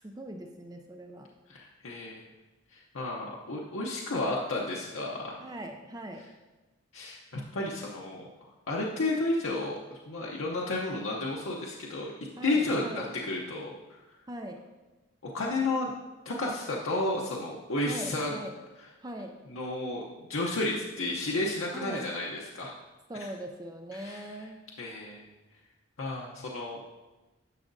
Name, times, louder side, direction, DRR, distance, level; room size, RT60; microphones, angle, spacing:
voice 1, 0.0-1.3 5.4-6.2 12.4-13.1 14.3-14.6 17.9-18.5 19.0-19.3 21.7-22.1 23.1-24.6, right 1 dB, 20° right, 4 dB, 0.4 m, -40 dB
voice 2, 1.5-2.3 2.7-5.4 6.2-6.3 6.9-8.3 8.7-9.7 10.1-12.1 12.4-13.7 14.1-14.2 15.2-15.9 16.2-18.4 18.8-18.9 19.5-20.0 20.3-22.7 23.1-23.3 23.9-24.5 24.8-25.3 26.0-26.8, left 2 dB, 80° left, -3 dB, 0.8 m, -32 dB
10.5 x 6.1 x 2.6 m, 1.1 s
head